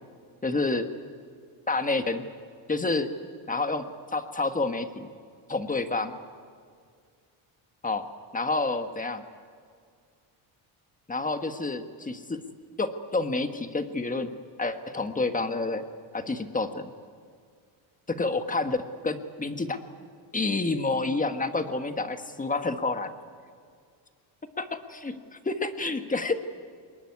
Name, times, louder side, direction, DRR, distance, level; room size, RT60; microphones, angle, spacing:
voice 1, 0.4-0.9 1.7-2.2 2.7-3.1 3.5-3.8 4.1-5.1 5.5-6.1 7.8-8.0 8.3-9.2 11.1-12.4 12.8-14.3 14.6-15.8 16.1-16.9 18.1-18.8 19.0-19.8 20.3-23.1 24.6-25.2 25.4-26.3, left 3 dB, 15° left, 8 dB, 1.5 m, -28 dB
24.0 x 21.5 x 9.7 m, 2.1 s
cardioid pair, 130°, 49 cm